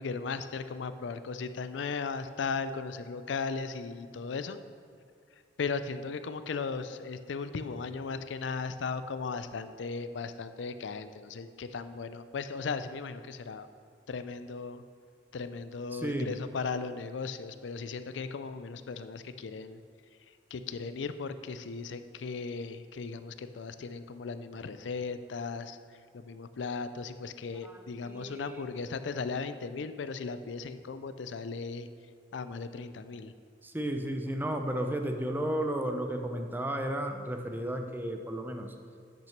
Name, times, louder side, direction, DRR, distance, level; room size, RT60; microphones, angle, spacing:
voice 1, 0.0-4.6 5.6-13.7 14.1-14.8 15.3-19.8 20.5-25.8 26.1-31.9 32.3-33.3, left 4 dB, 80° left, 12 dB, 0.4 m, -37 dB
voice 2, 15.9-16.4 27.6-28.6 33.6-38.7, right 1 dB, 10° right, 4 dB, 0.6 m, -33 dB
9.0 x 6.0 x 5.8 m, 2.2 s
head